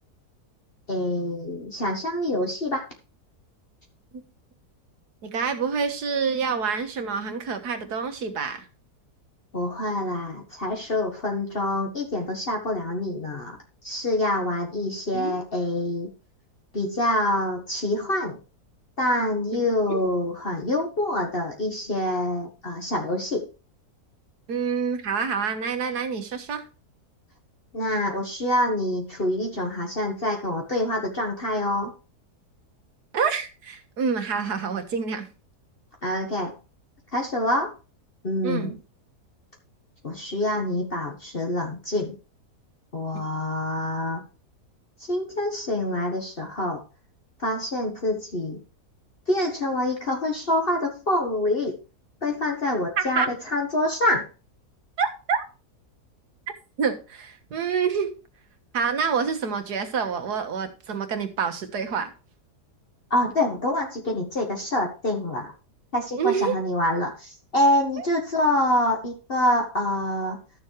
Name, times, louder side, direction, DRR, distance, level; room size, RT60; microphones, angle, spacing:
voice 1, 0.9-2.8 9.5-13.6 13.8-16.1 16.7-18.4 19.0-23.5 27.7-31.9 36.0-36.5 37.1-37.7 38.2-38.8 40.0-42.2 42.9-44.2 45.1-46.8 47.4-48.6 49.3-51.8 52.2-53.2 53.5-54.2 63.1-65.5 65.9-70.4, left 1 dB, 35° left, 1.5 m, -26 dB
voice 2, 5.2-8.7 15.1-15.4 19.5-19.6 19.9-20.0 24.5-26.6 33.1-35.3 38.4-38.7 43.1-43.2 53.0-53.3 55.0-55.4 56.8-58.1 58.7-62.1 66.2-66.6 68.0-68.1, right 6 dB, 80° right, 1.9 m, -27 dB
12.5 x 7.1 x 3.2 m
omnidirectional pair, 1.7 m